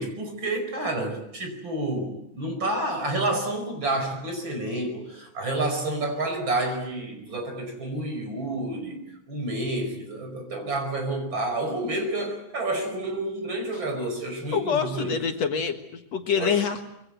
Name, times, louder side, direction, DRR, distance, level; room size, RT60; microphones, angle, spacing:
voice 1, 0.0-9.0 9.3-15.2 16.3-16.6, right 2 dB, 40° right, 5 dB, 5.8 m, -29 dB
voice 2, 14.5-16.8, left 6 dB, 65° left, 5 dB, 2.7 m, -26 dB
25.5 x 23.5 x 8.2 m, 0.81 s
omnidirectional pair, 3.3 m